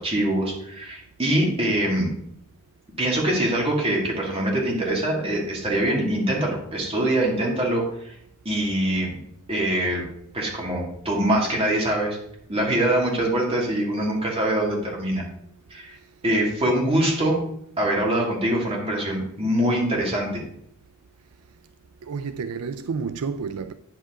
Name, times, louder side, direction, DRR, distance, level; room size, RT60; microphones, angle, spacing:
voice 1, 0.0-2.1 3.0-8.2 8.4-9.1 9.5-10.1 10.3-12.2 12.5-15.2 15.7-16.0 16.2-17.4 17.8-20.4, right 1 dB, 25° right, 2.3 m, -23 dB
voice 2, 15.9-16.2 22.0-23.7, right 5 dB, 75° right, 0.4 m, -31 dB
8.9 x 7.6 x 3.7 m
head